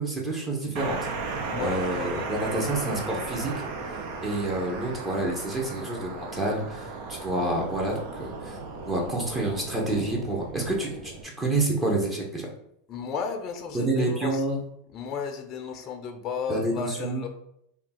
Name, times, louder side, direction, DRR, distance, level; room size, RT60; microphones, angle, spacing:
voice 1, 0.0-3.5 4.2-8.6 8.9-12.5 13.7-14.6 16.5-17.2, right 2 dB, 15° right, -1 dB, 0.9 m, -28 dB
sound 1, 0.8-11.2, right 4 dB, 60° right, 0.7 m, -36 dB
voice 2, 1.4-2.3 12.9-14.4 14.9-17.3, left 6 dB, 40° left, 5 dB, 0.5 m, -34 dB
3.4 x 2.3 x 4.2 m, 0.75 s
supercardioid pair, 125°, 0 cm